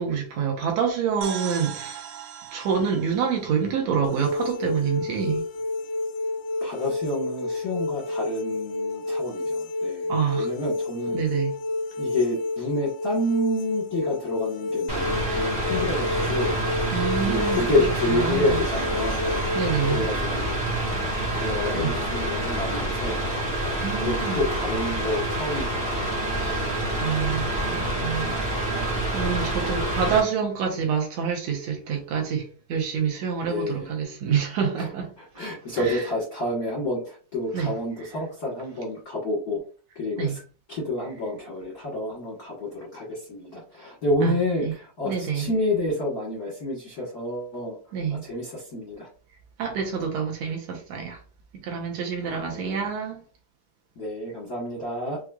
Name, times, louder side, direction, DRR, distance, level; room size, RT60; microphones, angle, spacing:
voice 1, 0.0-2.1 2.5-5.5 10.1-10.5 11.1-11.5 16.9-18.6 19.5-20.1 21.7-21.9 23.8-24.4 26.4-35.1 35.8-36.0 37.5-37.7 40.2-40.4 44.2-44.3 44.6-44.7 45.0-45.5 47.9-48.2 49.6-51.2 51.6-53.2, right 7 dB, 70° right, 1.7 m, -27 dB
sound 1, 1.2-4.8, right 9 dB, 90° right, 2.3 m, -39 dB
sound 2, 4.0-20.0, left 2 dB, 80° left, 1.8 m, -30 dB
voice 2, 6.6-11.2 12.0-16.6 17.2-19.4 19.8-20.6 21.3-23.2 23.6-26.1 33.5-33.9 34.8-34.9 35.2-39.6 39.9-40.4 40.7-47.8 48.1-49.1 52.2-52.9 54.0-55.2, left 1 dB, 55° left, 1.0 m, -29 dB
Mechanical fan, 14.9-30.2, right 1 dB, 30° right, 0.7 m, -27 dB
5.9 x 2.5 x 2.3 m
omnidirectional pair, 3.9 m